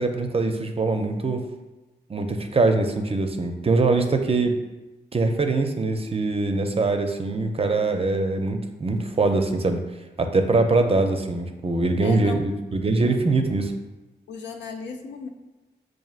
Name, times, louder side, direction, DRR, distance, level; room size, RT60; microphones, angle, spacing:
voice 1, 0.0-1.4 2.1-4.5 5.1-9.8 10.2-13.7, right 3 dB, 35° right, 5 dB, 0.5 m, -23 dB
voice 2, 12.0-12.4 12.8-13.1 14.3-15.3, left 5 dB, 85° left, 4 dB, 0.4 m, -36 dB
5.9 x 2.5 x 2.4 m, 1.1 s
cardioid pair, 55°, 18 cm